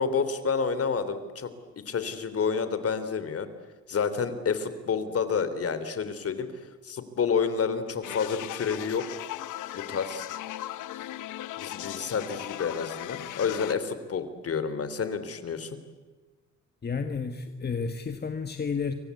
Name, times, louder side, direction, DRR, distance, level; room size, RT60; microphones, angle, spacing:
voice 1, 0.0-1.5 1.8-3.5 3.9-6.5 6.8-9.1 9.7-10.3 11.6-15.8, left 6 dB, 50° left, 11 dB, 3.4 m, -29 dB
sound 1, 8.0-13.7, left 13 dB, 85° left, 1.1 m, -38 dB
voice 2, 16.8-18.9, left 5 dB, 35° left, 7 dB, 1.7 m, -31 dB
28.5 x 24.0 x 8.4 m, 1.2 s
cardioid pair, 90°, 30 cm